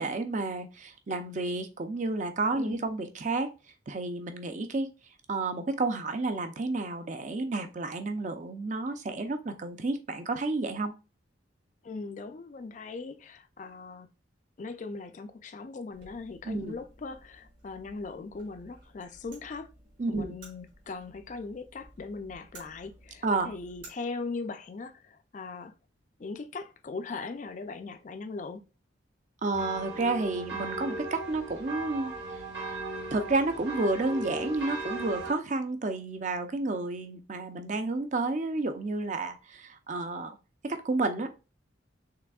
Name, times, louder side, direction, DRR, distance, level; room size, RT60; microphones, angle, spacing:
voice 1, 0.0-3.5 3.9-4.9 5.3-10.9 16.4-16.8 20.0-20.4 23.2-23.5 29.4-32.4 33.1-40.4 40.6-41.3, right 3 dB, 40° right, 0.5 m, -31 dB
voice 2, 11.8-14.1 14.6-19.7 20.1-25.7 26.2-28.6, left 4 dB, 40° left, 0.4 m, -39 dB
sound 1, 15.9-23.9, right 2 dB, 75° right, 2.5 m, -55 dB
sound 2, 29.5-35.3, right 2 dB, 55° right, 1.5 m, -37 dB
5.8 x 3.4 x 2.3 m
head